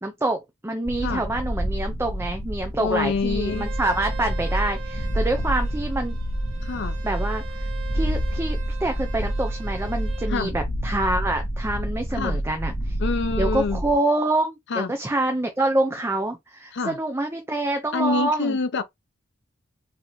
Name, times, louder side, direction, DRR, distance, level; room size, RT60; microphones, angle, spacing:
voice 1, 0.0-6.2 7.0-13.0 13.4-18.6, right 2 dB, 15° right, 0.6 m, -26 dB
sound 1, 0.9-13.9, right 1 dB, 35° left, 1.7 m, -28 dB
voice 2, 2.8-3.7 6.6-7.0 10.3-10.5 12.1-12.4 13.0-13.8 14.7-14.9 16.7-17.0 17.9-18.8, left 4 dB, 60° left, 0.6 m, -26 dB
Bowed string instrument, 3.4-10.3, right 4 dB, 70° right, 1.0 m, -42 dB
4.1 x 2.8 x 3.1 m
head